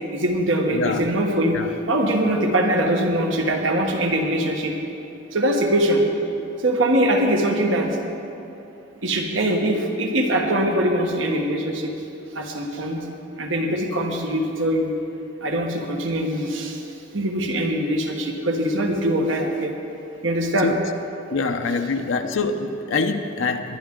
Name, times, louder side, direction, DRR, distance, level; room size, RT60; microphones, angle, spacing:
voice 1, 0.1-1.6 1.9-4.7 5.3-6.0 6.6-7.9 9.0-11.9 12.3-13.0 13.4-14.9 15.4-16.8 17.1-19.7 20.2-20.7, right 1 dB, 80° right, 2 dB, 1.4 m, -22 dB
voice 2, 0.7-1.0 1.5-1.7 20.6-20.8 21.3-23.8, left 4 dB, 80° left, 5 dB, 0.7 m, -24 dB
21.5 x 10.5 x 3.8 m, 2.9 s
head